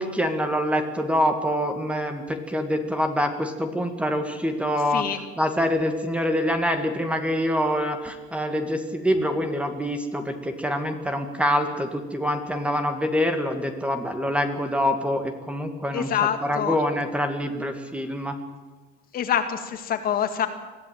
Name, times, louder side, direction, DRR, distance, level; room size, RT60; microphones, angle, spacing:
voice 1, 0.0-5.1 5.4-16.1 16.4-18.4, equal, 5° right, 7 dB, 2.0 m, -25 dB
voice 2, 15.9-16.8 19.1-20.5, left 9 dB, 45° left, 7 dB, 2.3 m, -25 dB
22.0 x 14.5 x 9.2 m, 1.3 s
cardioid pair, 140°, 21 cm